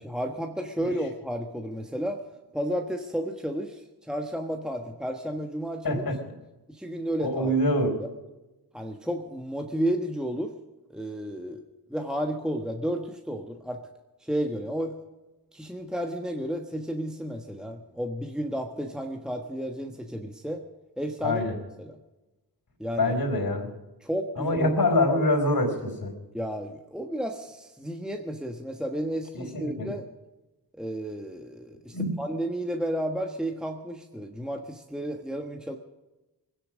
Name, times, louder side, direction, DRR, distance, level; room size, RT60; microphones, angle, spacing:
voice 1, 0.0-2.2 2.5-6.0 6.7-7.5 8.0-8.1 8.7-10.5 10.9-11.6 11.9-13.8 14.2-15.0 15.5-20.6 21.0-21.5 21.8-22.0 22.8-23.1 24.0-24.8 26.3-30.1 30.7-35.8, equal, ahead, 3 dB, 1.3 m, -32 dB
voice 2, 5.8-6.2 7.2-8.0 21.2-21.5 23.0-23.7 24.4-26.1 29.3-29.9 31.9-32.1, left 1 dB, 55° left, 2 dB, 4.6 m, -25 dB
21.0 x 10.0 x 6.3 m, 1.1 s
cardioid pair, 50°, 42 cm